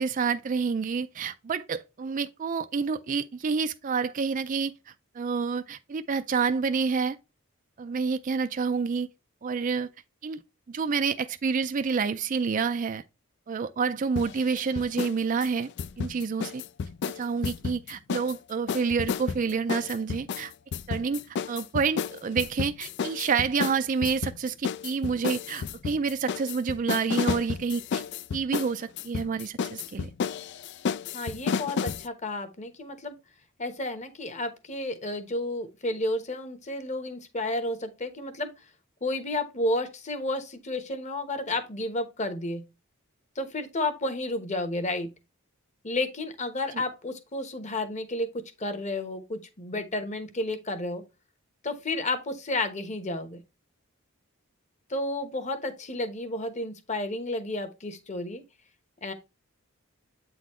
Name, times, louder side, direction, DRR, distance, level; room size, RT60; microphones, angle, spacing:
voice 1, 0.0-4.7 5.2-7.2 7.8-9.1 9.4-9.9 10.2-10.4 10.7-13.0 13.5-15.7 16.0-16.6 17.2-20.5 20.9-28.0 28.3-30.1, right 5 dB, 40° right, 0.4 m, -28 dB
sound 1, 14.2-15.2 15.4-18.4 18.7-32.1, left 6 dB, 55° left, 0.3 m, -32 dB
voice 2, 31.1-33.1 33.6-38.5 39.0-42.6 43.4-45.1 45.8-48.3 48.6-51.0 51.6-53.4 54.9-58.4 59.0-59.1, left 2 dB, 35° left, 1.1 m, -31 dB
8.3 x 4.0 x 3.0 m
head